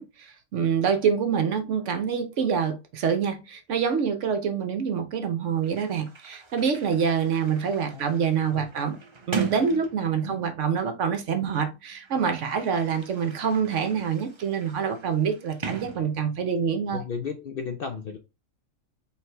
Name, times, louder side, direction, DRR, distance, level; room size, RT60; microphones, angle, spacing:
voice 1, 0.0-9.0 9.3-17.0, right 7 dB, 60° right, 1.0 m, -26 dB
Sliding door, 5.3-5.4 5.6-10.7 11.6-16.6, right 5 dB, 30° right, 0.5 m, -39 dB
voice 2, 16.9-18.2, left 6 dB, 60° left, 0.6 m, -33 dB
4.7 x 3.2 x 3.3 m
omnidirectional pair, 1.5 m